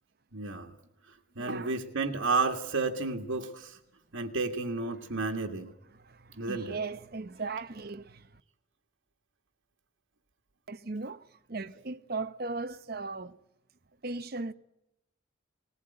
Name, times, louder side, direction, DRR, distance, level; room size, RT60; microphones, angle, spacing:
voice 1, 0.3-0.7 1.1-3.8 4.1-5.7 6.4-6.8, right 3 dB, 90° right, 1.7 m, -32 dB
voice 2, 1.4-1.8 5.1-5.2 5.9-8.4 10.7-13.4 14.0-14.5, right 3 dB, 50° right, 0.8 m, -38 dB
19.5 x 19.5 x 8.8 m
head